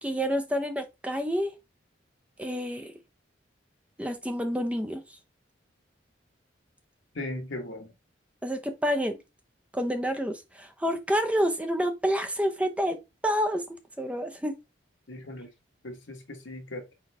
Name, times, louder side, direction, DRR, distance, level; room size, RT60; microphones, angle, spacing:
voice 1, 0.0-1.5 2.4-2.9 4.0-5.0 8.4-9.2 9.7-13.6 14.0-14.6, equal, 5° right, 0.6 m, -28 dB
voice 2, 7.1-7.9 15.1-15.5 15.8-16.8, left 1 dB, 80° left, 1.2 m, -38 dB
4.1 x 4.0 x 3.2 m
head